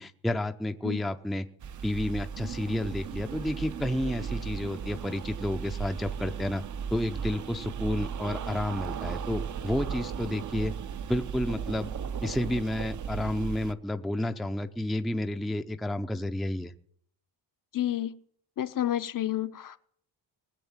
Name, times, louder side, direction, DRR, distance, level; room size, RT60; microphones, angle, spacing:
voice 1, 0.0-1.5 1.8-6.6 6.9-10.7 11.1-11.9 12.2-16.7, left 1 dB, ahead, 7 dB, 0.5 m, -31 dB
sound 1, 1.6-13.7, right 7 dB, 40° right, 0.6 m, -36 dB
voice 2, 17.7-18.2 18.6-19.8, left 12 dB, 45° left, 12 dB, 0.8 m, -30 dB
19.5 x 7.9 x 7.3 m, 0.64 s
cardioid pair, 120°, 47 cm